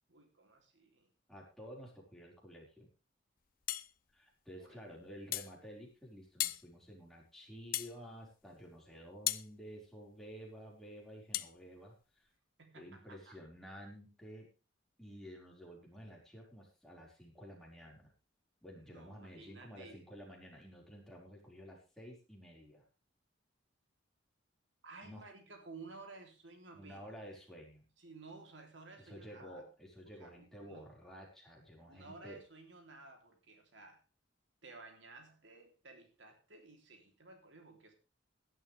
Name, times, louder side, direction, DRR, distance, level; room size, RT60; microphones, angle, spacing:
voice 1, 0.1-1.1 4.6-4.8 12.6-13.4 18.8-20.0 24.8-27.1 28.0-29.7 30.2-30.9 31.9-34.0 34.6-38.0, right 3 dB, 75° right, 4 dB, 3.4 m, -55 dB
voice 2, 1.3-2.9 4.1-12.3 12.7-14.5 15.0-18.1 18.6-22.8 25.0-25.3 26.7-27.9 29.0-32.4, equal, ahead, -3 dB, 5.1 m, -52 dB
sound 1, 3.7-3.9 5.3-5.5 6.4-6.6 7.7-8.0 9.3-9.5 11.3-11.5, left 14 dB, 50° left, 0.7 m, -35 dB
17.5 x 11.5 x 3.5 m, 0.32 s
head